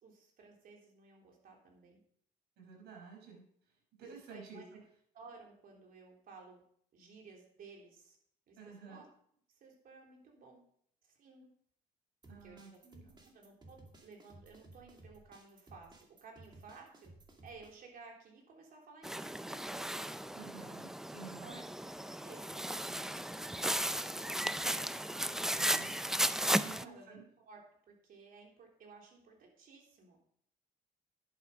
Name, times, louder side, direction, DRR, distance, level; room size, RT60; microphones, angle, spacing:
voice 1, 0.0-2.0 4.0-4.8 5.1-6.6 6.9-8.2 8.5-9.1 9.5-10.6 11.0-11.5 12.4-12.8 13.2-17.1 17.4-20.0 21.2-25.0 26.4-30.2, right 4 dB, 60° right, 0 dB, 3.6 m, -56 dB
voice 2, 2.6-3.4 4.0-4.6 8.6-9.0 12.3-13.2 20.3-21.6 25.5-25.9 26.6-27.2, right 5 dB, 80° right, 0 dB, 5.1 m, -51 dB
sound 1, 12.2-17.7, right 2 dB, 25° right, 2.3 m, -58 dB
sound 2, 19.0-26.8, right 1 dB, 5° right, 0.4 m, -35 dB
10.5 x 8.3 x 5.0 m, 0.64 s
cardioid pair, 110°, 17 cm